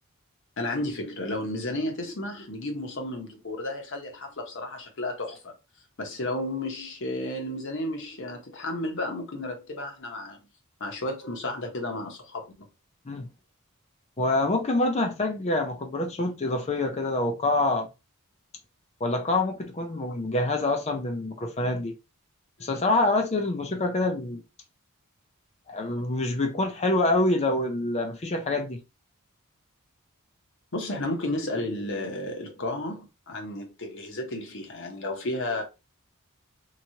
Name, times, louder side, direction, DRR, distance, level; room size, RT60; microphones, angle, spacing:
voice 1, 0.6-5.5 6.0-10.4 10.8-12.5 30.7-35.6, left 1 dB, 60° left, 0.9 m, -32 dB
voice 2, 14.2-17.9 19.0-21.9 22.6-24.4 25.7-28.8, left 2 dB, 30° left, 0.5 m, -26 dB
3.0 x 2.3 x 2.7 m
head